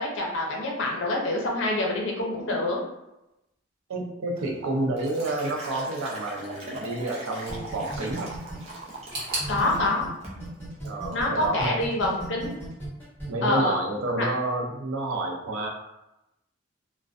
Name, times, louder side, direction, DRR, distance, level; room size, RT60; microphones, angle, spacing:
voice 1, 0.0-2.8 9.5-10.1 11.1-12.5 13.4-13.8 14.1-14.3, left 2 dB, 65° left, -1 dB, 0.6 m, -26 dB
voice 2, 3.9-8.3 10.8-11.8 13.3-15.7, right 2 dB, 80° right, 1 dB, 0.5 m, -29 dB
Liquid, 4.4-9.9 10.2-10.5 10.9-11.2, right 1 dB, 30° right, 0.4 m, -39 dB
sound 1, 7.5-10.1 10.4-13.3, right 2 dB, 10° left, 0.8 m, -37 dB
sound 2, 9.1-12.0 12.2-13.1 13.3-13.4 14.3-14.4, right 1 dB, 45° right, 0.8 m, -38 dB
2.4 x 2.1 x 2.4 m, 0.91 s
head